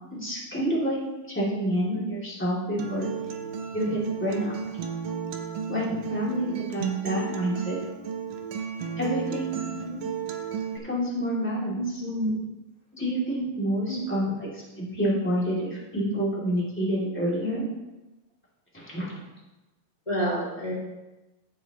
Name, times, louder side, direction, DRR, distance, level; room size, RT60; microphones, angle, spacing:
voice 1, 0.1-1.0 1.3-3.1 3.7-4.5 5.7-7.8 9.0-9.7 10.7-11.8 12.9-17.6 18.7-19.2, equal, 5° left, -7 dB, 1.8 m, -28 dB
Acoustic guitar, 2.8-10.8, right 7 dB, 75° right, 2.1 m, -34 dB
voice 2, 11.8-12.3 13.9-14.0 20.0-20.7, equal, 20° left, -9 dB, 0.8 m, -29 dB
16.0 x 6.7 x 3.1 m, 1.0 s
omnidirectional pair, 4.5 m